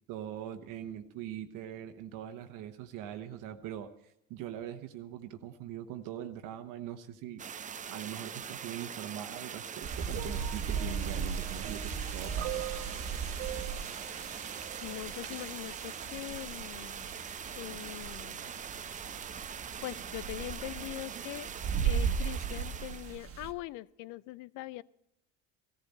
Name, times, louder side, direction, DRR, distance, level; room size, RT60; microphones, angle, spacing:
voice 1, 0.1-7.4 7.9-12.7, right 10 dB, 65° right, 6 dB, 1.1 m, -42 dB
sound 1, 7.4-23.2, right 7 dB, 20° right, 0.5 m, -43 dB
sound 2, 9.8-23.5, right 6 dB, 40° right, 1.4 m, -37 dB
sound 3, 10.1-15.3 16.2-16.3, right 14 dB, 85° right, 1.5 m, -44 dB
voice 2, 14.8-17.1 17.6-18.4 19.8-21.5 21.8-24.8, left 18 dB, 60° left, 20 dB, 0.5 m, -42 dB
16.0 x 14.5 x 4.2 m, 0.81 s
supercardioid pair, 85°, 34 cm